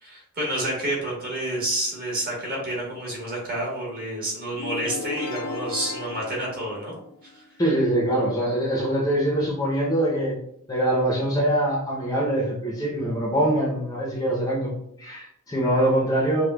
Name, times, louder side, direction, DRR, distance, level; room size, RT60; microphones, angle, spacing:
voice 1, 0.0-6.9 7.2-7.4, right 1 dB, 45° right, -4 dB, 1.3 m, -29 dB
sound 1, 4.6-7.4, left 3 dB, 85° left, 0.4 m, -35 dB
voice 2, 7.6-10.4 10.7-14.7 15.0-16.5, right 1 dB, 15° left, -3 dB, 0.5 m, -23 dB
4.8 x 2.1 x 2.2 m, 0.70 s
head